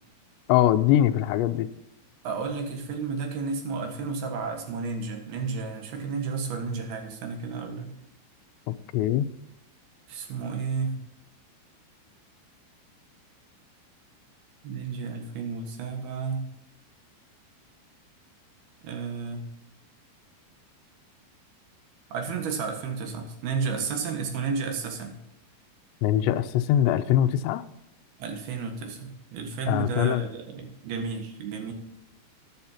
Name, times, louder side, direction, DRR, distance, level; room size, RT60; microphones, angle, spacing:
voice 1, 0.5-1.7 8.9-9.3 26.0-27.6 29.7-30.3, left 12 dB, 85° left, 10 dB, 2.9 m, -22 dB
voice 2, 2.2-7.9 10.1-11.0 14.6-16.4 18.8-19.5 22.1-25.2 28.2-31.7, right 5 dB, 65° right, 3 dB, 3.3 m, -32 dB
14.0 x 10.5 x 2.9 m, 0.88 s
omnidirectional pair, 5.0 m